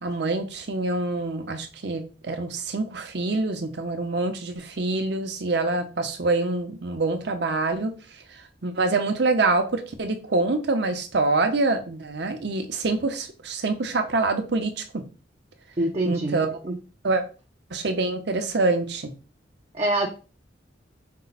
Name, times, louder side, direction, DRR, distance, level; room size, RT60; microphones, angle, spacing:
voice 1, 0.0-7.9 8.6-15.0 16.0-16.5 17.0-17.2 17.7-19.1, right 3 dB, 65° right, 6 dB, 0.8 m, -25 dB
voice 2, 15.8-16.8 19.7-20.1, right 1 dB, 35° right, 1 dB, 0.5 m, -25 dB
5.3 x 2.2 x 4.0 m, 0.35 s
head